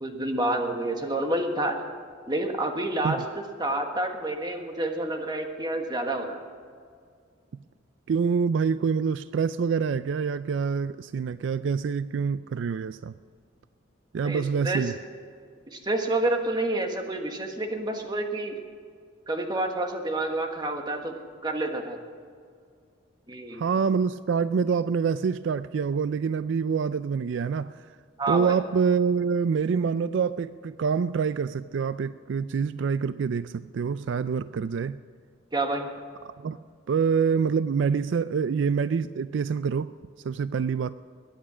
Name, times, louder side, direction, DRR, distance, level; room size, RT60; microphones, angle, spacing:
voice 1, 0.0-1.8 2.3-3.2 3.6-6.4 14.2-14.8 15.7-18.5 19.3-21.1 21.4-22.0 23.3-23.7 28.2-28.6 35.5-35.9, right 2 dB, 20° right, 4 dB, 1.5 m, -28 dB
voice 2, 8.1-13.1 14.1-14.9 23.5-27.9 28.3-35.0 36.4-36.6 36.9-39.9 40.2-41.0, right 6 dB, 70° right, 14 dB, 0.3 m, -26 dB
22.0 x 9.3 x 6.2 m, 2.1 s
head